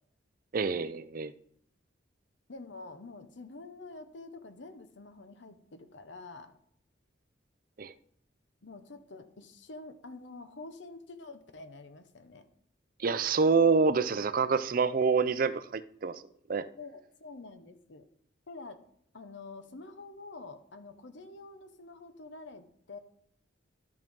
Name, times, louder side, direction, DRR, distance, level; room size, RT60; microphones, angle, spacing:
voice 1, 0.5-1.3 7.8-7.9 13.0-16.2 16.5-16.7, right 5 dB, 45° right, 0.5 m, -27 dB
voice 2, 2.5-6.6 8.6-12.5 16.8-18.1 18.5-18.8 19.1-23.0, left 3 dB, 70° left, 0.9 m, -47 dB
13.0 x 6.0 x 3.7 m
head